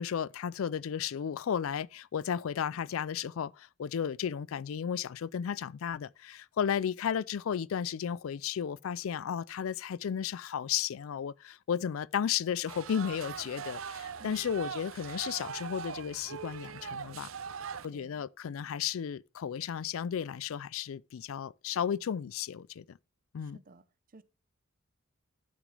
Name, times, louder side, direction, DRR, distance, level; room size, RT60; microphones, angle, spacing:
voice 1, 0.0-17.3 17.8-22.8 23.3-23.6, left 8 dB, 70° left, 0.4 m, -34 dB
sound 1, 12.7-17.9, right 6 dB, 70° right, 0.7 m, -41 dB
voice 2, 17.9-18.3 23.4-23.8 24.1-24.2, right 2 dB, 40° right, 0.8 m, -54 dB
12.5 x 6.1 x 3.3 m
head